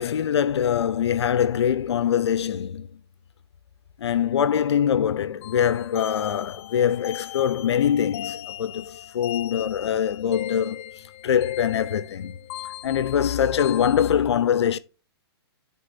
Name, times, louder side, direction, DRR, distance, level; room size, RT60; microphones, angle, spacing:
voice 1, 0.0-2.9 4.0-12.4 12.8-14.8, left 9 dB, 80° left, 0.5 m, -23 dB
sound 1, 5.4-14.1, left 14 dB, 30° left, 0.3 m, -38 dB
7.8 x 3.5 x 4.1 m
hypercardioid pair, 150°, 14 cm